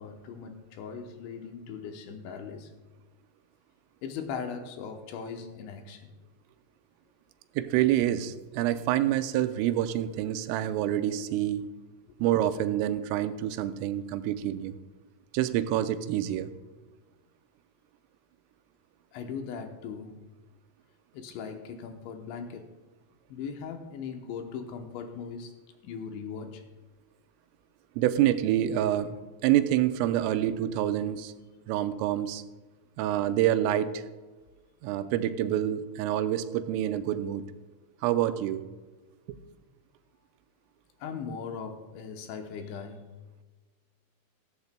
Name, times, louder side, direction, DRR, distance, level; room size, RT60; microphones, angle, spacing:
voice 1, 0.0-2.7 4.0-6.1 19.1-20.2 21.1-22.7 23.3-25.5 25.8-26.6 41.0-43.1, left 6 dB, 75° left, 4 dB, 3.0 m, -39 dB
voice 2, 7.6-11.7 12.2-14.7 15.3-16.5 28.0-29.2 29.4-31.3 31.7-32.4 33.0-34.0 34.8-37.5 38.0-38.6, right 12 dB, 90° right, 10 dB, 3.2 m, -27 dB
15.0 x 14.0 x 2.2 m, 1.3 s
omnidirectional pair, 5.7 m